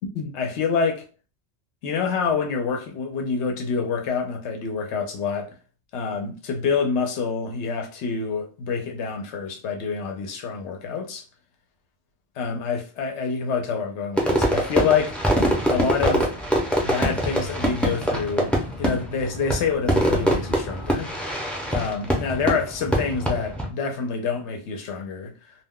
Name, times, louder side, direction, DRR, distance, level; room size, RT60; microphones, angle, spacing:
voice 1, 0.1-1.0 1.8-5.5 5.9-11.2 12.4-15.2 15.7-16.3 16.8-21.1 21.7-25.3, left 5 dB, 85° left, 0.9 m, -27 dB
Fireworks, 14.2-23.7, equal, ahead, 0.4 m, -24 dB
2.3 x 2.2 x 3.5 m
omnidirectional pair, 1.1 m